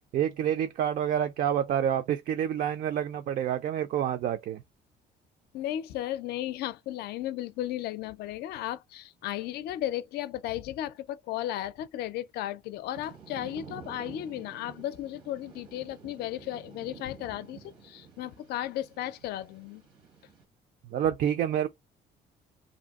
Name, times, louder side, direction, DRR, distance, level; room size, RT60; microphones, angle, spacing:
voice 1, 0.1-4.6 20.9-21.7, right 10 dB, 55° right, 0.4 m, -28 dB
voice 2, 5.5-19.8, left 13 dB, 70° left, 0.4 m, -35 dB
Thunder / Rain, 12.9-20.4, right 6 dB, 85° right, 1.2 m, -50 dB
2.7 x 2.6 x 2.3 m
cardioid pair, 110°, 17 cm